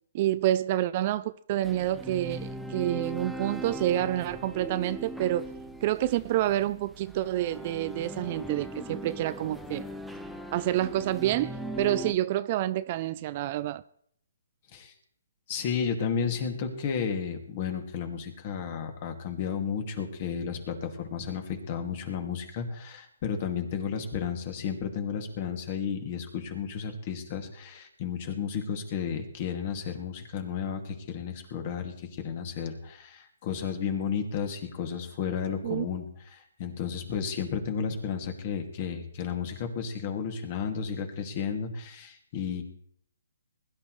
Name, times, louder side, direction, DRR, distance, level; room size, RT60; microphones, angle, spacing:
voice 1, 0.1-5.5 5.8-9.8 10.5-13.8 35.6-35.9, right 13 dB, 35° right, 0.4 m, -28 dB
sound 1, 1.6-12.1, right 1 dB, ahead, 0.8 m, -39 dB
voice 2, 15.5-36.0 36.3-42.6, left 7 dB, 35° left, 2.3 m, -33 dB
21.0 x 11.5 x 3.2 m
hypercardioid pair, 155°, 0 cm